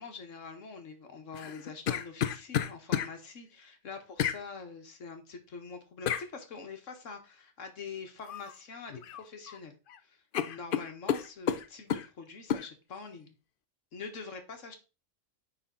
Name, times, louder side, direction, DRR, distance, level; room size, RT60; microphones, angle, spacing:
voice 1, 0.0-9.8 10.0-13.3 13.9-14.8, left 5 dB, 80° left, 6 dB, 1.7 m, -45 dB
sound 1, 1.3-3.1 4.2-4.4 6.1-6.3 8.3-8.5 8.9-9.6 9.9-10.0 10.3-12.1 12.5-12.7, left 9 dB, 55° left, 0.6 m, -31 dB
9.8 x 4.0 x 3.8 m, 0.31 s
omnidirectional pair, 1.3 m